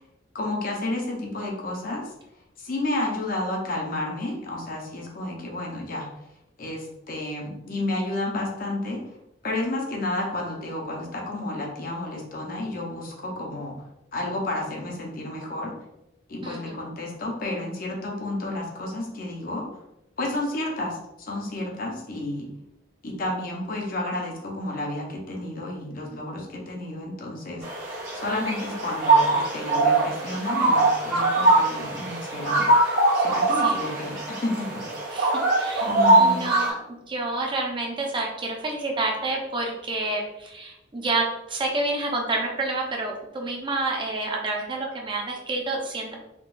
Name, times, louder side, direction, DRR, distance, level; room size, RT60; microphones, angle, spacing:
voice 1, 0.3-2.0 2.6-6.1 6.6-9.0 9.4-13.8 14.1-15.7 16.3-19.6 20.2-22.5 23.0-27.7 28.1-32.7 33.2-34.8 35.8-36.5, left 2 dB, 50° left, 0 dB, 0.7 m, -31 dB
voice 2, 16.4-16.8 33.6-33.8 35.1-35.9 36.2-36.8 37.1-46.1, right 2 dB, 25° right, 0 dB, 0.5 m, -29 dB
sound 1, 27.6-36.7, right 2 dB, 75° right, 1.3 m, -22 dB
3.7 x 2.3 x 2.4 m, 0.87 s
head